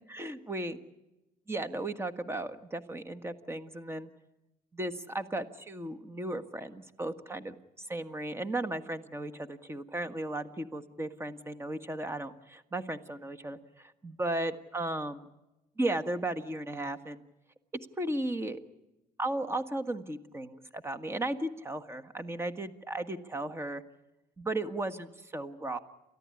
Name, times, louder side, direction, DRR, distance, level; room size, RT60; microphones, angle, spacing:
voice 1, 0.1-0.8 1.5-4.1 4.7-7.5 7.9-15.2 15.8-17.2 18.0-18.6 19.2-23.8 24.4-25.8, right 1 dB, 15° right, 10 dB, 1.6 m, -35 dB
30.0 x 14.0 x 9.9 m, 1.0 s
cardioid pair, 110°, 17 cm